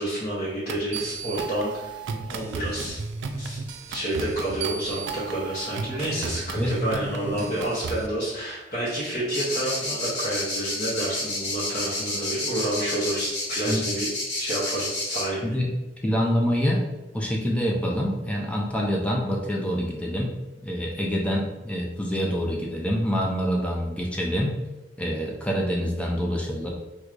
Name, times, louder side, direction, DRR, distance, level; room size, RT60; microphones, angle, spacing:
voice 1, 0.0-2.0 2.3-3.0 3.4-3.6 3.9-14.1 14.3-15.6, right 1 dB, 40° left, -9 dB, 0.8 m, -29 dB
sound 1, 0.7-8.1, right 4 dB, 85° right, 0.3 m, -34 dB
sound 2, 9.3-15.2, left 2 dB, 70° left, 1.1 m, -29 dB
voice 2, 16.0-16.8 17.1-20.4 20.6-24.6 25.0-26.7, equal, 5° left, -1 dB, 0.4 m, -26 dB
4.5 x 2.3 x 2.5 m, 1.1 s
head